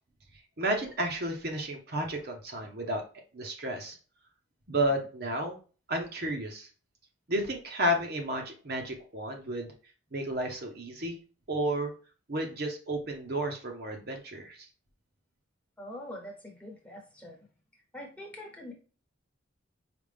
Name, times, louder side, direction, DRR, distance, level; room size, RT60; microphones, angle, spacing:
voice 1, 0.6-3.0 3.3-4.0 4.7-5.6 5.9-6.7 7.3-9.7 10.1-11.2 11.5-11.9 12.3-14.6, right 1 dB, 50° right, 2 dB, 0.8 m, -32 dB
voice 2, 15.8-17.4 17.9-18.7, left 1 dB, 5° left, -1 dB, 1.0 m, -44 dB
5.0 x 2.4 x 3.4 m, 0.36 s
head